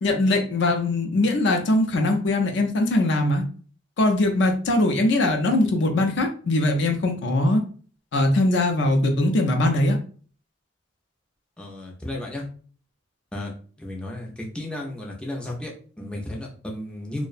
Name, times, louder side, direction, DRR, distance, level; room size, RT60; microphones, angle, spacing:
voice 1, 0.0-3.4 4.0-7.6 8.1-10.0, left 2 dB, 65° left, 5 dB, 0.4 m, -21 dB
voice 2, 11.6-12.5 13.3-17.2, left 1 dB, 5° left, -2 dB, 0.4 m, -34 dB
2.5 x 2.0 x 2.4 m, 0.42 s
head